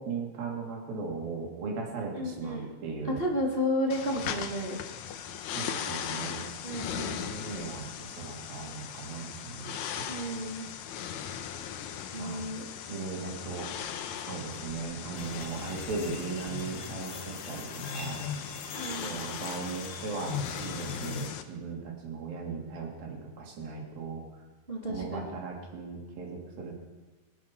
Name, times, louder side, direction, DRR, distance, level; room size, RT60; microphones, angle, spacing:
voice 1, 0.0-3.2 5.5-6.4 7.2-10.1 12.2-12.4 12.9-13.7 14.3-18.2 19.0-24.2 24.9-26.7, right 4 dB, 70° right, -1 dB, 4.5 m, -38 dB
voice 2, 2.1-2.7 3.0-4.8 6.6-7.2 10.1-10.7 12.1-12.6 18.7-19.2 24.7-25.3, equal, 55° right, -2 dB, 0.6 m, -32 dB
sound 1, 3.9-21.4, left 8 dB, 75° left, 1.8 m, -38 dB
sound 2, 15.2-21.3, left 3 dB, 55° left, 2.5 m, -44 dB
24.5 x 8.4 x 5.9 m, 1.2 s
omnidirectional pair, 4.3 m